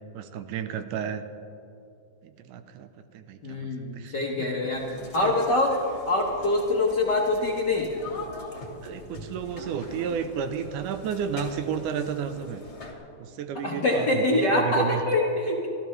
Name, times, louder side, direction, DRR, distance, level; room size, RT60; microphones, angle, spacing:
voice 1, 0.1-1.2 2.2-4.7 5.2-5.3 8.8-12.6 13.2-15.0, right 7 dB, 85° right, 9 dB, 2.3 m, -32 dB
voice 2, 3.4-5.8 6.1-7.9 13.5-15.7, left 2 dB, 55° left, -2 dB, 1.1 m, -25 dB
sound 1, 4.7-12.9, left 2 dB, 25° left, 1.7 m, -42 dB
24.5 x 14.5 x 3.2 m, 2.8 s
omnidirectional pair, 3.6 m